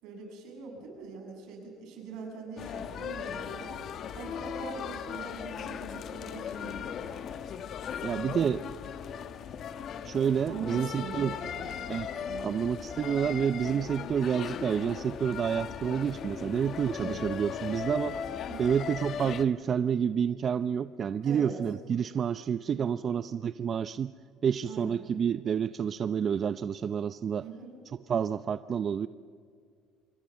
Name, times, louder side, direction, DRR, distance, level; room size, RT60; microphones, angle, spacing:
voice 1, 0.0-6.9 8.0-8.5 10.5-11.8 12.3-12.6 16.4-16.6 17.0-17.3 18.5-18.8 21.2-21.6 22.7-23.1 24.7-25.0 27.4-27.7, right 4 dB, 75° right, 2 dB, 7.3 m, -43 dB
sound 1, 2.6-19.5, left 8 dB, 50° left, 1.2 m, -38 dB
voice 2, 8.0-8.6 10.0-11.3 11.9-12.1 12.4-18.2 18.6-24.1 24.4-27.5 28.1-29.1, right 7 dB, 40° right, 13 dB, 0.6 m, -29 dB
25.0 x 24.5 x 7.3 m, 2.1 s
cardioid pair, 105°, 0 cm